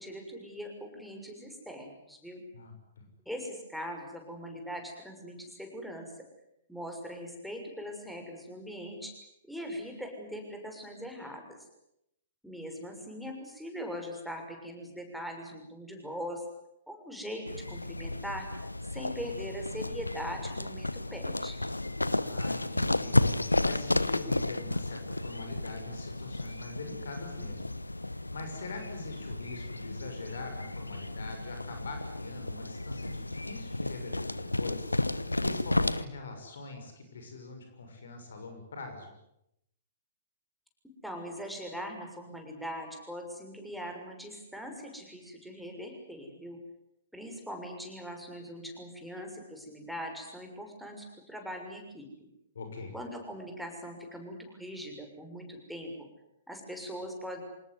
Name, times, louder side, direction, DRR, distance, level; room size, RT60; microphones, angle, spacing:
voice 1, 0.0-2.4 3.2-6.1 6.7-9.1 9.5-11.4 12.4-16.4 16.9-18.5 18.9-21.6 41.0-46.6 47.1-52.1 52.9-56.1 56.5-57.4, equal, ahead, 2 dB, 6.4 m, -41 dB
voice 2, 2.5-3.0 22.2-23.2 23.6-27.7 28.0-39.1 52.5-52.9, left 3 dB, 65° left, 5 dB, 6.2 m, -44 dB
sound 1, 17.5-36.0, left 2 dB, 85° left, 1.0 m, -32 dB
26.0 x 20.0 x 9.7 m, 0.81 s
figure-of-eight pair, 115°, 0 cm